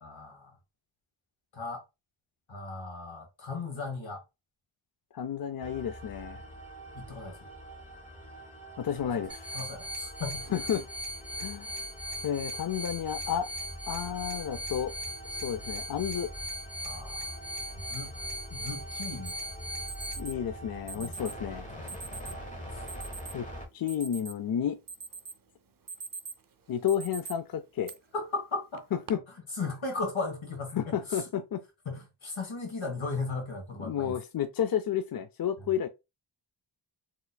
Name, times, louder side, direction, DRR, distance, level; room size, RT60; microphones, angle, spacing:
voice 1, 0.0-0.6 1.5-1.8 2.5-4.2 6.9-7.5 9.0-9.1 9.5-10.5 16.8-17.4 17.7-19.4 20.9-21.2 21.7-22.8 28.1-28.9 29.3-31.3 31.8-34.2 35.6-35.7, left 3 dB, 75° left, 1.5 m, -37 dB
voice 2, 5.1-6.4 8.8-9.6 10.5-10.9 11.4-11.7 12.2-13.5 13.9-14.9 15.4-16.3 20.2-21.7 23.3-23.5 23.7-24.8 26.7-27.9 29.1-29.2 30.8-31.6 33.8-35.9, left 9 dB, 50° left, 0.4 m, -31 dB
sound 1, 5.6-23.7, equal, 15° left, 1.2 m, -44 dB
sound 2, 9.3-20.1, equal, ahead, 2.3 m, -39 dB
Alarm, 19.3-19.4 19.9-20.3 20.9-21.4 21.9-22.4 22.9-23.3 23.7-24.5 24.9-25.4 25.7-26.4 26.9-27.3 27.9-28.0 28.7-29.1, right 5 dB, 45° right, 0.5 m, -42 dB
4.1 x 3.0 x 2.2 m
wide cardioid pair, 60°, 48 cm